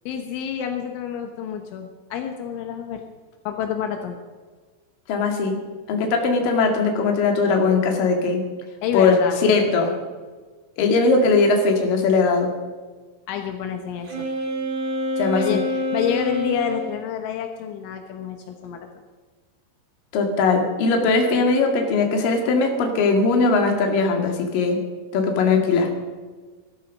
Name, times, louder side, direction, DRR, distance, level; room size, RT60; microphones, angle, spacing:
voice 1, 0.1-3.1 3.5-4.2 8.8-9.4 13.3-14.3 15.3-18.9, left 8 dB, 80° left, 5 dB, 3.4 m, -28 dB
voice 2, 5.1-5.6 5.9-8.4 8.9-9.1 9.4-9.9 10.8-12.5 15.2-15.4 20.1-24.8 25.1-25.9, left 4 dB, 55° left, 2 dB, 3.4 m, -19 dB
Wind instrument woodwind instrument, 14.1-17.0, left 1 dB, 45° right, 2.6 m, -26 dB
19.0 x 13.0 x 5.4 m, 1.4 s
omnidirectional pair, 5.6 m